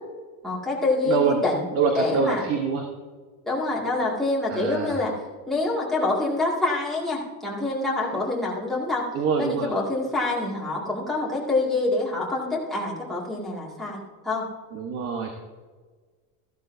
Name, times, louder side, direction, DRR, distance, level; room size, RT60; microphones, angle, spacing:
voice 1, 0.4-1.6 1.9-2.5 3.5-5.1 5.5-9.0 9.4-14.4, left 2 dB, ahead, -6 dB, 2.1 m, -26 dB
voice 2, 1.0-1.4 1.7-2.9 4.5-5.0 9.1-9.7 14.7-15.3, right 5 dB, 35° right, 3 dB, 1.0 m, -25 dB
14.0 x 12.0 x 2.7 m, 1.5 s
cardioid pair, 170°, 41 cm